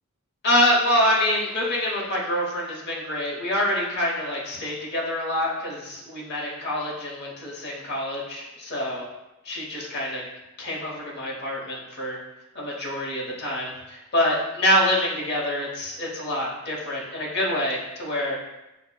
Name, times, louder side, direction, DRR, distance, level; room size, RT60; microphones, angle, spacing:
voice 1, 0.4-9.0 9.4-10.2 10.6-12.2 12.5-18.4, left 1 dB, 50° left, -4 dB, 0.9 m, -26 dB
6.0 x 2.1 x 2.2 m, 0.97 s
head